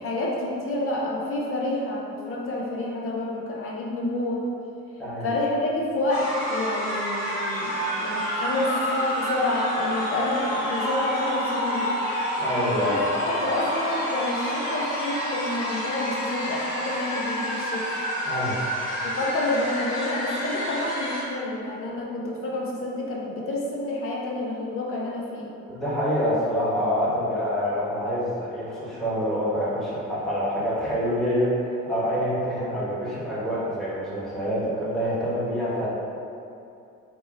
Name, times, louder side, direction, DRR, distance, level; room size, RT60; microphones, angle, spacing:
voice 1, 0.0-4.5 5.2-11.9 12.8-17.9 19.0-25.5, left 1 dB, 35° left, -3 dB, 0.7 m, -29 dB
sound 1, 6.1-21.2, equal, 60° left, 1.1 m, -28 dB
voice 2, 12.4-13.0 18.2-18.5 25.7-35.9, equal, ahead, -10 dB, 1.3 m, -26 dB
2.8 x 2.3 x 3.9 m, 2.6 s
figure-of-eight pair, 45°, 41 cm